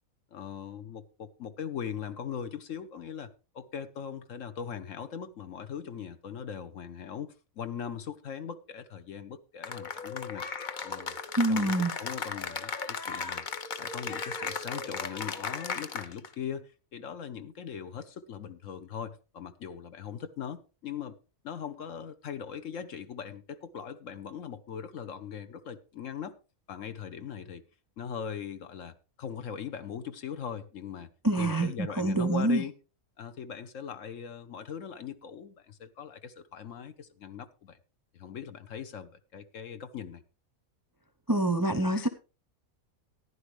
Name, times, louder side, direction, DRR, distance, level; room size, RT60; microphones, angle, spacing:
voice 1, 0.3-10.5 10.8-11.2 11.5-11.7 12.0-13.5 13.8-21.2 21.4-26.4 26.7-27.6 28.0-31.1 31.4-32.7 33.2-37.8 38.1-40.2, left 8 dB, 70° left, 1.3 m, -40 dB
Cheering / Applause, 9.6-16.3, left 5 dB, 45° left, 0.7 m, -36 dB
voice 2, 11.4-11.9 31.2-32.6 41.3-42.1, right 1 dB, 25° right, 0.4 m, -26 dB
14.0 x 11.0 x 3.2 m
omnidirectional pair, 1.4 m